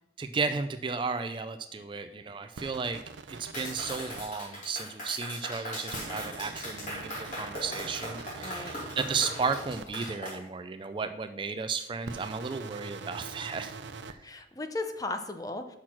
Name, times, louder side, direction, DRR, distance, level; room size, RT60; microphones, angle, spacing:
voice 1, 0.2-3.0 3.3-13.7 14.1-14.2, right 4 dB, 25° right, 9 dB, 0.3 m, -34 dB
sound 1, 2.6-4.2 5.9-9.9 12.0-14.1, right 4 dB, 85° right, 0.5 m, -43 dB
Clapping, 3.5-10.4, equal, 45° left, 3.0 m, -39 dB
voice 2, 8.4-8.8 14.2-15.8, left 2 dB, 20° left, 7 dB, 0.6 m, -36 dB
6.5 x 6.0 x 5.8 m, 0.80 s
head